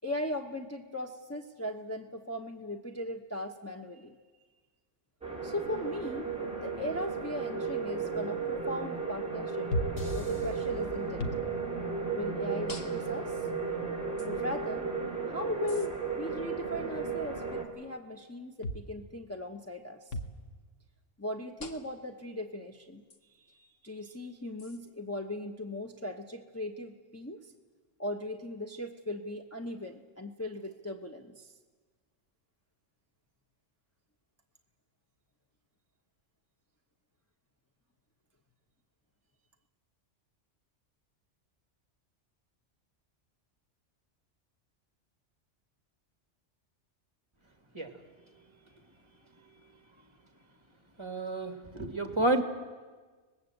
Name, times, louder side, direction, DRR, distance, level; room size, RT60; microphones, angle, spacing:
voice 1, 0.0-4.2 5.4-6.3 6.6-9.7 10.2-11.3 12.1-13.5 14.2-14.9 15.3-20.2 21.2-23.0 23.4-27.5 28.0-31.5, left 1 dB, 15° left, 2 dB, 1.0 m, -38 dB
sound 1, 5.2-17.6, right 5 dB, 5° right, 3.5 m, -34 dB
sound 2, 9.7-10.1 11.2-11.4 12.7-13.2 14.2-14.3 15.7-15.9 18.6-18.9 20.1-20.4 21.6-22.0 23.1-23.2 24.6-24.8, left 1 dB, 55° left, 1.7 m, -36 dB
sound 3, 10.0-14.3, right 2 dB, 80° left, 3.0 m, -46 dB
voice 2, 51.0-52.4, right 2 dB, 25° right, 6 dB, 1.9 m, -30 dB
26.0 x 20.0 x 8.0 m, 1.4 s
omnidirectional pair, 1.2 m